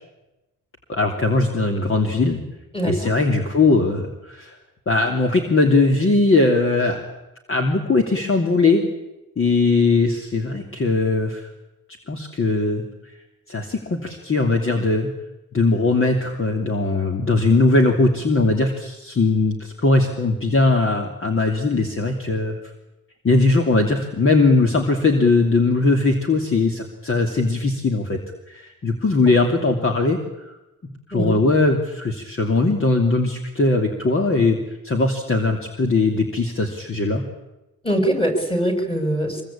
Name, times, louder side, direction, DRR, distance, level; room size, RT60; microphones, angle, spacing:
voice 1, 0.9-2.4 2.8-4.6 4.9-7.0 7.5-8.9 9.4-11.5 12.1-12.8 13.5-15.1 15.5-22.6 23.2-28.2 28.5-30.5 30.8-34.6 34.8-37.2, left 3 dB, 35° left, 3 dB, 3.0 m, -20 dB
voice 2, 2.7-3.1 31.1-31.4 37.8-39.4, right 1 dB, 15° left, 5 dB, 6.7 m, -22 dB
25.5 x 23.0 x 8.8 m, 0.98 s
cardioid pair, 130°, 36 cm